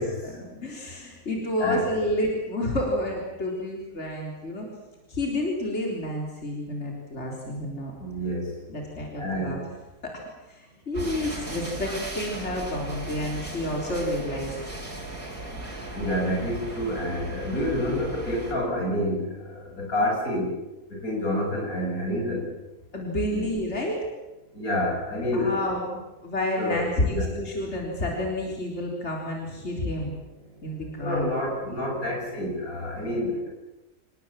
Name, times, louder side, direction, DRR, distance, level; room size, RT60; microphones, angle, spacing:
voice 1, 0.2-4.7 5.1-7.9 8.7-9.6 10.0-10.2 10.5-14.6 22.9-24.0 25.3-25.9 26.2-30.2 30.6-31.3, left 1 dB, 50° left, -1 dB, 4.1 m, -29 dB
voice 2, 8.0-8.5 9.2-9.6 15.9-19.3 19.8-20.5 21.0-22.5 23.3-23.4 24.5-25.6 26.6-27.3 31.0-33.5, left 1 dB, 85° left, 0 dB, 7.6 m, -28 dB
sound 1, 10.9-18.5, right 2 dB, 80° right, 5.0 m, -37 dB
27.0 x 19.0 x 7.6 m, 1.0 s
omnidirectional pair, 1.5 m